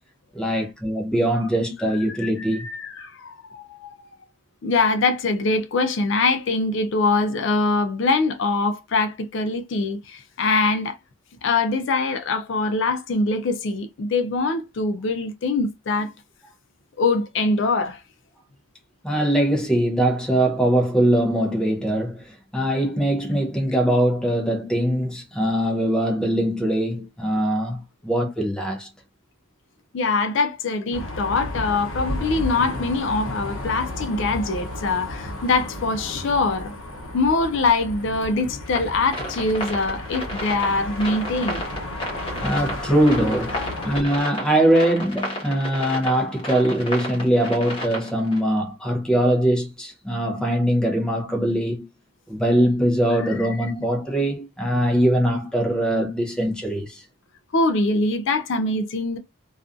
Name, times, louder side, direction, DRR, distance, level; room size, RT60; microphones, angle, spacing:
voice 1, 0.3-2.7 19.0-28.9 42.4-43.6 43.8-51.9 52.3-57.0, right 1 dB, 5° left, 0.6 m, -22 dB
voice 2, 2.2-4.1 4.6-11.0 11.4-16.1 17.0-18.0 29.9-36.7 37.1-41.6 43.5-43.7 53.4-53.7 57.5-59.2, left 3 dB, 60° left, 0.4 m, -23 dB
sound 1, 30.9-44.0, left 1 dB, 75° left, 0.8 m, -33 dB
sound 2, 38.7-48.4, left 1 dB, 25° left, 1.0 m, -32 dB
2.5 x 2.3 x 2.5 m
head